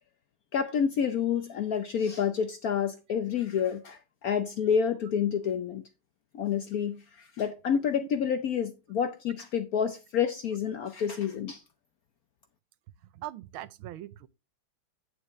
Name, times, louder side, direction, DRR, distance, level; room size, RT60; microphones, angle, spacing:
voice 1, 0.5-5.8 6.3-11.6, left 7 dB, 65° left, 0.9 m, -29 dB
voice 2, 13.1-14.3, right 13 dB, 90° right, 1.5 m, -41 dB
8.9 x 8.2 x 3.1 m
omnidirectional pair, 2.2 m